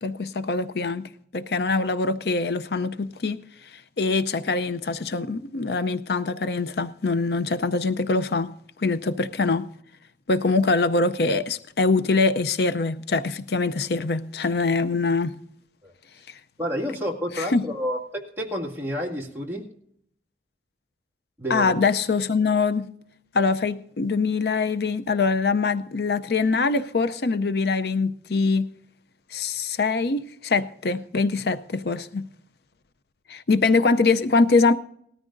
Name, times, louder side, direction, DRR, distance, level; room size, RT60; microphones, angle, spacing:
voice 1, 0.0-8.5 8.8-9.7 10.3-15.3 16.3-16.4 17.4-17.6 21.5-22.9 23.3-28.7 29.3-32.3 33.3-34.7, left 4 dB, 65° left, 0.5 m, -23 dB
voice 2, 16.6-19.7 21.4-21.7, equal, 10° right, 2.1 m, -30 dB
19.0 x 13.5 x 2.6 m
head